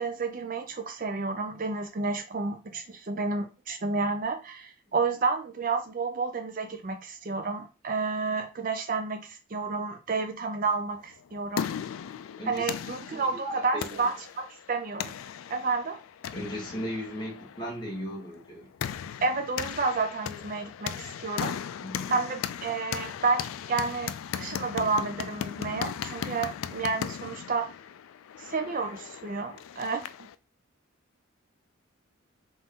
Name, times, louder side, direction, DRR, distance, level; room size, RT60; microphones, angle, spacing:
voice 1, 0.0-11.7 12.5-15.1 15.5-16.0 19.2-21.5 22.1-27.7 28.4-30.1, right 4 dB, 40° right, 6 dB, 0.5 m, -30 dB
sound 1, 11.1-30.3, left 8 dB, 80° left, 0.3 m, -37 dB
voice 2, 12.4-12.7 13.1-14.1 16.3-18.7 21.8-22.2, equal, 20° left, -2 dB, 1.2 m, -37 dB
4.0 x 2.6 x 3.7 m, 0.31 s
head